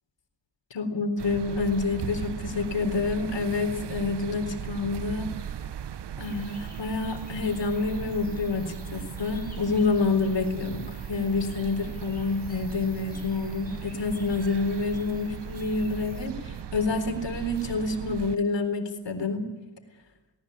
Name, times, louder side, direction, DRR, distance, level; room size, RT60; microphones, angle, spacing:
voice 1, 0.7-5.3 6.2-19.4, left 3 dB, 80° left, 7 dB, 4.0 m, -28 dB
sound 1, 1.2-18.4, right 9 dB, 70° right, 0.9 m, -38 dB
sound 2, 6.2-16.3, left 2 dB, 20° left, 6.1 m, -53 dB
19.5 x 18.5 x 9.8 m, 1.1 s
cardioid pair, 65°, 43 cm